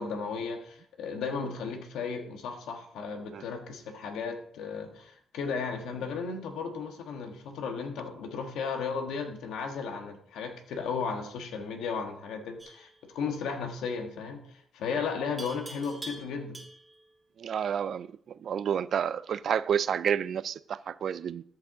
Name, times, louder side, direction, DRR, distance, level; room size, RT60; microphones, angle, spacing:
voice 1, 0.0-16.6, left 5 dB, 80° left, 1.5 m, -35 dB
Livestock farm animals working animals, 12.6-12.9 15.4-17.0, right 2 dB, 15° right, 1.5 m, -44 dB
voice 2, 17.4-18.1 18.4-21.4, right 8 dB, 60° right, 0.3 m, -29 dB
13.0 x 4.7 x 3.8 m
cardioid pair, 90°, 0 cm